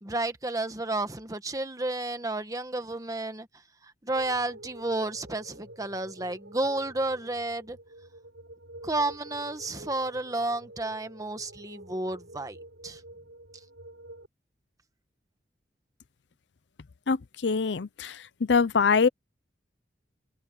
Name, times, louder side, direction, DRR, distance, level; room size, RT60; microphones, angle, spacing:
voice 1, 0.0-3.5 3.8-7.8 8.8-12.6 12.8-13.0, right 2 dB, 20° right, 1.4 m, -31 dB
sound 1, 4.1-14.3, right 1 dB, 90° right, 6.9 m, -48 dB
voice 2, 17.4-18.2 18.5-19.1, left 5 dB, 70° left, 0.6 m, -23 dB
head